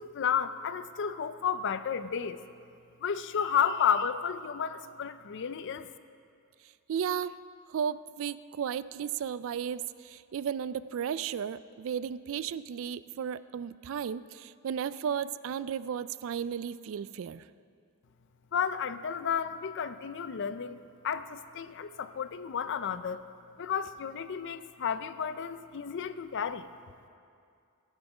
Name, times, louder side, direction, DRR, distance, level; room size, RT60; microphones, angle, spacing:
voice 1, 0.0-2.4 3.0-5.9 18.5-20.8 21.0-23.2 23.6-26.7, left 7 dB, 55° left, 13 dB, 0.5 m, -32 dB
voice 2, 6.9-7.3 7.7-17.4, right 8 dB, 65° right, 16 dB, 0.3 m, -34 dB
16.0 x 8.2 x 4.9 m, 2.4 s
head